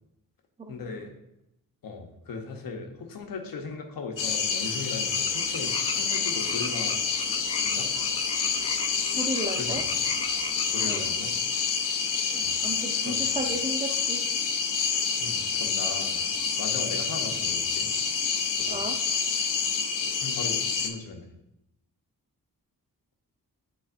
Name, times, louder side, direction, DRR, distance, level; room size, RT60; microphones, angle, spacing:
voice 1, 0.7-1.1 1.8-7.0 7.6-7.9 9.5-10.0 10.7-11.3 12.4-12.6 13.0-13.4 15.2-16.3 16.6-17.9 18.5-18.8 20.2-21.3, left 4 dB, 90° left, 3 dB, 1.0 m, -38 dB
sound 1, 4.2-20.9, left 6 dB, 65° left, 0.7 m, -28 dB
sound 2, 5.1-11.1, left 3 dB, 20° left, 0.4 m, -38 dB
voice 2, 9.1-9.8 10.8-11.1 12.3-14.2 18.7-18.9, right 1 dB, 20° right, 4 dB, 0.7 m, -34 dB
9.8 x 3.9 x 2.5 m, 0.85 s
wide cardioid pair, 115°, 34 cm